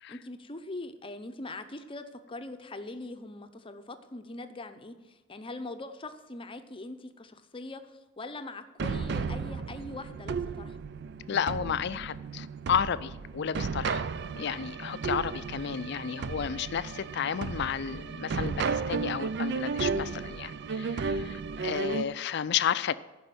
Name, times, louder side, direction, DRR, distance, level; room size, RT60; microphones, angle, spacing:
voice 1, 0.1-10.8, left 2 dB, 30° left, 9 dB, 0.7 m, -42 dB
sound 1, 8.8-22.0, right 5 dB, 60° right, 0.4 m, -34 dB
voice 2, 11.3-14.1 14.3-22.9, left 8 dB, 60° left, 15 dB, 0.4 m, -32 dB
11.0 x 5.5 x 7.8 m, 1.1 s
head